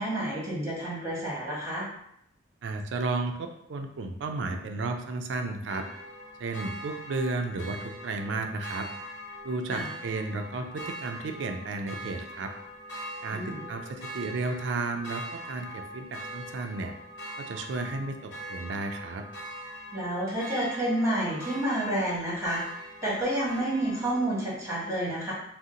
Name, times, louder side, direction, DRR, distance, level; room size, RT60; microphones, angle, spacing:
voice 1, 0.0-1.9 9.7-9.9 13.3-13.6 19.9-22.6 23.0-25.3, right 1 dB, 15° right, -7 dB, 1.1 m, -29 dB
voice 2, 2.6-5.9 6.4-8.9 9.4-12.5 13.2-16.9 17.4-19.3, right 3 dB, 75° right, 5 dB, 0.4 m, -33 dB
sound 1, 5.7-24.4, equal, 65° left, 1.1 m, -42 dB
2.7 x 2.1 x 3.7 m, 0.74 s
head